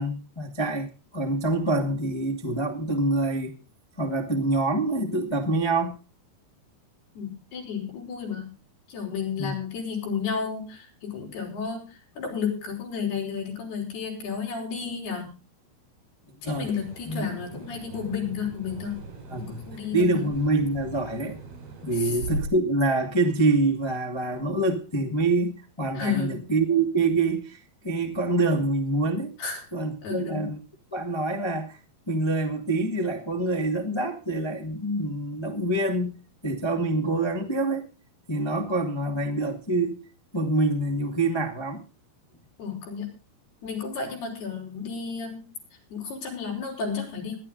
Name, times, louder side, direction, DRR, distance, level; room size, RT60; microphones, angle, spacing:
voice 1, 0.0-3.6 4.0-6.0 9.4-9.5 16.4-16.7 17.1-17.3 19.3-19.6 19.9-21.4 21.8-29.3 29.7-30.6 30.9-31.8 32.1-36.1 36.4-37.9 38.3-40.0 40.3-41.8, right 2 dB, 50° left, 0.3 m, -26 dB
voice 2, 7.2-8.5 8.9-15.3 16.4-19.0 19.4-20.3 21.9-22.2 25.9-26.4 29.4-29.7 30.0-30.5 42.6-43.1 43.6-45.4 45.9-47.4, left 6 dB, 85° left, 7.3 m, -32 dB
sound 1, 16.4-22.5, right 2 dB, 85° right, 6.5 m, -39 dB
19.0 x 11.0 x 3.9 m
omnidirectional pair, 4.4 m